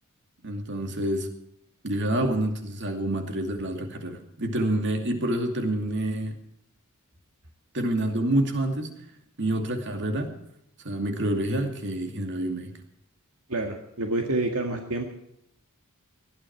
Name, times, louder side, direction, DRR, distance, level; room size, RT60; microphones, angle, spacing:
voice 1, 0.4-1.3 1.8-6.3 7.7-8.9 9.4-10.3 10.8-12.7, right 1 dB, 55° right, 5 dB, 2.5 m, -27 dB
voice 2, 13.5-15.0, right 2 dB, 70° right, 3 dB, 2.0 m, -28 dB
19.5 x 13.0 x 4.7 m, 0.77 s
head